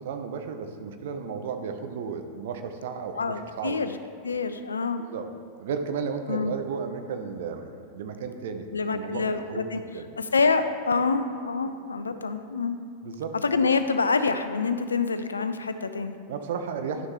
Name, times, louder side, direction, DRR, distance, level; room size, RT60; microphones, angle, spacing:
voice 1, 0.0-3.8 5.0-5.3 5.6-9.7 9.9-10.1 13.0-13.4 16.3-17.1, right 6 dB, 55° right, 7 dB, 0.6 m, -34 dB
voice 2, 3.1-4.0 4.2-5.0 6.3-6.5 8.7-9.8 10.2-12.8 13.4-16.2, left 4 dB, 75° left, 10 dB, 0.4 m, -26 dB
11.0 x 6.4 x 3.0 m, 2.2 s
figure-of-eight pair, 90°, 0 cm